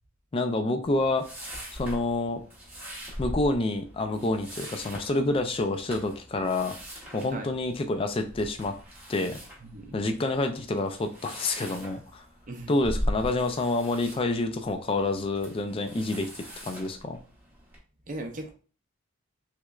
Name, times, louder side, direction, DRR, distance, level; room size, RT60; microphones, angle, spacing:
voice 1, 0.3-1.3 1.7-2.4 3.2-6.7 7.1-8.8 9.1-9.4 9.9-12.3 12.7-17.2, left 2 dB, 25° left, 6 dB, 0.3 m, -28 dB
sound 1, 0.8-17.8, equal, 10° right, 0.8 m, -40 dB
voice 2, 9.6-10.0 12.5-12.7 18.1-18.5, right 1 dB, 35° right, 5 dB, 0.5 m, -38 dB
3.2 x 3.0 x 2.3 m, 0.38 s
head